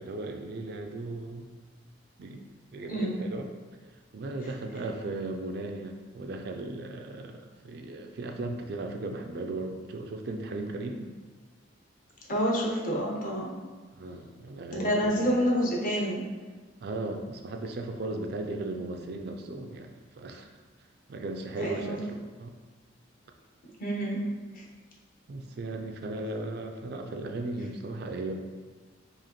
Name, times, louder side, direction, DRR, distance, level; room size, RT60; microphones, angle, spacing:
voice 1, 0.0-1.4 2.2-3.5 4.1-11.1 14.0-15.3 16.8-19.9 20.2-20.5 21.1-22.5 25.3-28.4, right 2 dB, 55° right, 4 dB, 0.3 m, -36 dB
voice 2, 12.3-13.6 14.7-16.3 21.6-22.0 23.8-24.2 24.5-24.6, equal, 45° left, -3 dB, 0.8 m, -28 dB
4.8 x 2.5 x 2.9 m, 1.4 s
head